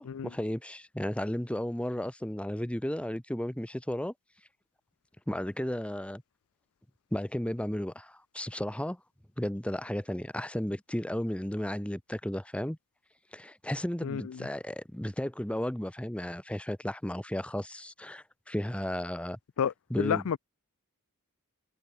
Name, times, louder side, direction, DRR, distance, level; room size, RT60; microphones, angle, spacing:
voice 1, 0.0-4.1 5.3-6.2 7.1-9.0 9.4-12.8 13.3-19.4 19.9-20.2, equal, 5° left, 1.0 m, -34 dB
voice 2, 14.0-14.5 19.6-20.4, left 7 dB, 65° left, 0.4 m, -31 dB
head